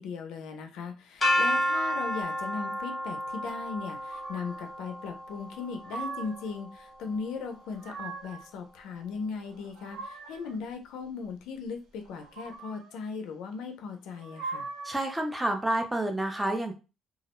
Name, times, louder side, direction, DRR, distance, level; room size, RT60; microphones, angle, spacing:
voice 1, 0.0-14.7, left 5 dB, 80° left, 5 dB, 0.4 m, -38 dB
sound 1, 1.2-7.1, equal, 20° left, 0.9 m, -31 dB
sound 2, 4.1-4.7 5.5-6.5 7.5-8.5 9.4-10.6 12.1-13.0 14.1-15.1, right 4 dB, 75° right, 0.6 m, -41 dB
voice 2, 14.8-16.7, right 1 dB, 5° right, 4 dB, 0.4 m, -29 dB
2.3 x 2.0 x 2.9 m, 0.31 s
cardioid pair, 155°, 0 cm